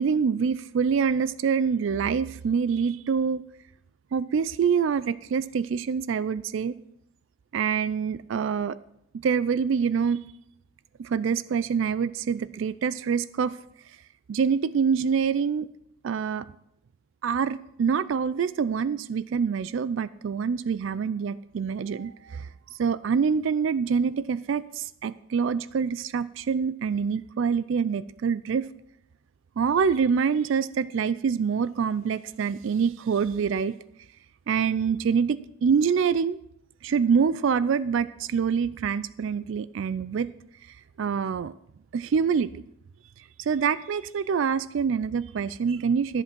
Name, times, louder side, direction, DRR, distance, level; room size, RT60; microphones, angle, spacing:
voice 1, 0.0-3.4 4.1-6.7 7.5-8.8 9.2-10.2 11.0-13.6 14.3-15.7 16.0-16.5 17.2-22.5 22.8-28.7 29.6-33.7 34.5-36.4 36.8-40.3 41.0-41.5 41.9-42.6 43.4-46.2, right 6 dB, 65° right, 16 dB, 0.3 m, -25 dB
11.5 x 7.8 x 6.0 m, 0.78 s
head